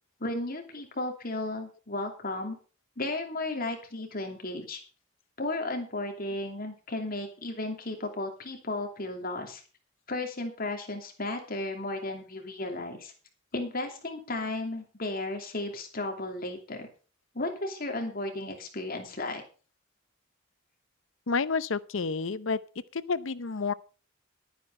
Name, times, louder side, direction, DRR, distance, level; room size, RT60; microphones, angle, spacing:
voice 1, 0.2-2.6 3.0-4.8 5.4-9.6 10.1-13.1 13.5-16.9 17.3-19.4, left 2 dB, 45° left, 2.7 m, -34 dB
voice 2, 21.3-22.6 22.9-23.7, left 4 dB, 75° left, 0.7 m, -29 dB
12.0 x 9.4 x 5.4 m
head